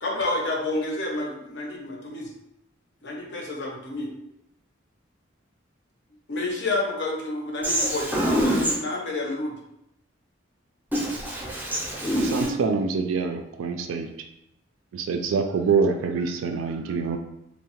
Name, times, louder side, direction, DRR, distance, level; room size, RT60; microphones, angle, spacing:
voice 1, 0.0-2.3 3.0-4.1 6.3-8.1 8.4-9.5, left 2 dB, 55° left, 0 dB, 0.5 m, -29 dB
voice 2, 7.6-8.7 10.9-12.5, equal, 10° right, -3 dB, 0.4 m, -25 dB
voice 3, 12.3-14.1 14.9-17.2, right 5 dB, 85° right, 5 dB, 0.3 m, -25 dB
2.7 x 2.1 x 2.9 m, 0.82 s
head